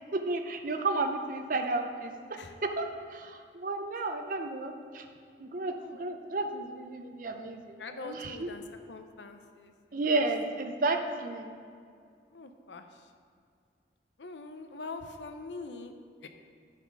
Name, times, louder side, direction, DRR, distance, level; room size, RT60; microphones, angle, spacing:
voice 1, 0.1-5.0 5.4-8.5 9.9-11.5, right 3 dB, 50° right, 5 dB, 0.6 m, -32 dB
voice 2, 5.8-6.2 7.8-8.6 8.9-10.3 12.3-13.1 14.2-15.9 16.2-16.3, left 3 dB, 80° left, 7 dB, 0.6 m, -44 dB
10.0 x 4.2 x 6.0 m, 2.3 s
head